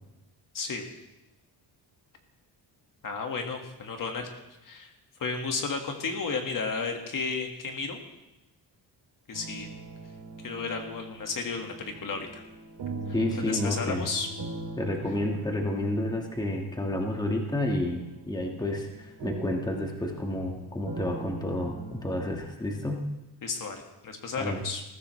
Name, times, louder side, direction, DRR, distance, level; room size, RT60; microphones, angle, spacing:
voice 1, 0.5-0.9 3.0-4.3 4.6-4.9 5.2-8.0 9.3-9.7 10.4-12.4 13.5-14.3 23.4-24.8, left 4 dB, 50° left, 3 dB, 1.7 m, -33 dB
sound 1, 9.3-22.2, right 3 dB, 60° right, 2.4 m, -41 dB
voice 2, 13.1-14.1 14.8-23.0 24.4-24.6, left 1 dB, 10° left, 1 dB, 1.4 m, -30 dB
20.0 x 14.5 x 3.2 m, 0.98 s
wide cardioid pair, 160°, 43 cm